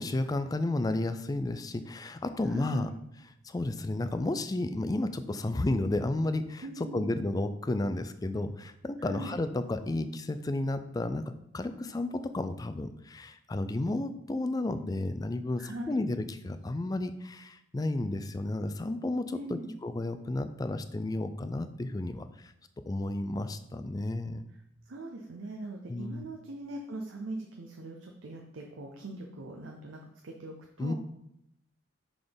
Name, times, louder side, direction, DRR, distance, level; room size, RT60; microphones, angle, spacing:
voice 1, 0.0-2.9 3.4-22.5 22.9-24.4 25.9-26.2 30.8-30.9, left 2 dB, 20° left, 11 dB, 0.3 m, -32 dB
voice 2, 2.4-2.9 6.6-7.1 9.0-9.3 15.6-16.0 19.3-19.7 24.9-30.9, right 1 dB, 80° right, 2 dB, 0.6 m, -41 dB
5.9 x 3.8 x 5.1 m, 0.78 s
head